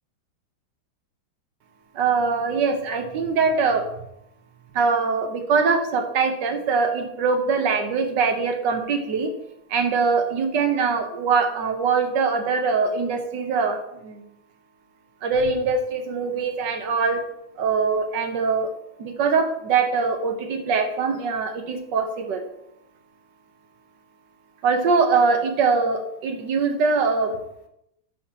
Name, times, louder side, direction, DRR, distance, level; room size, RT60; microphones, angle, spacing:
voice 1, 1.9-3.8 4.7-9.3 9.7-14.2 15.2-17.2 17.6-18.7 19.0-22.4 24.6-27.4, right 4 dB, 60° right, 5 dB, 1.6 m, -22 dB
12.0 x 6.0 x 2.9 m, 0.79 s
omnidirectional pair, 2.3 m